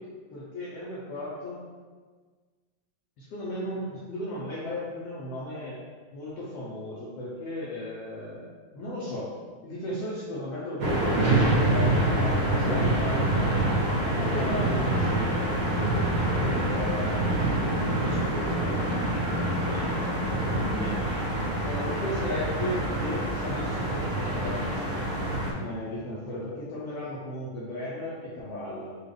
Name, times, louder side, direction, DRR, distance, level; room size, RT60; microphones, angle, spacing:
voice 1, 0.3-1.6 3.2-5.8 6.1-8.5 8.7-9.3 9.6-13.6 14.0-18.7 19.6-21.0 21.6-25.0 25.5-29.0, left 1 dB, 80° left, -7 dB, 1.4 m, -36 dB
sound 1, 10.8-25.5, right 1 dB, 85° right, 1.1 m, -26 dB
sound 2, 14.6-21.0, equal, 65° left, 1.2 m, -35 dB
5.9 x 2.4 x 3.4 m, 1.5 s
omnidirectional pair, 3.7 m